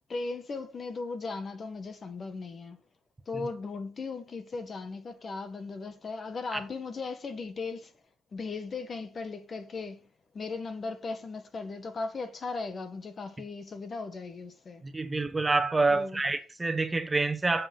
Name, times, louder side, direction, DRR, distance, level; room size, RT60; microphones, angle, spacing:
voice 1, 0.1-2.8 3.3-7.9 8.3-10.0 10.3-14.8 15.9-16.2, left 4 dB, 40° left, 1.6 m, -37 dB
voice 2, 14.8-17.7, right 3 dB, 20° right, 1.4 m, -27 dB
8.6 x 7.4 x 5.6 m
cardioid pair, 90°, 0 cm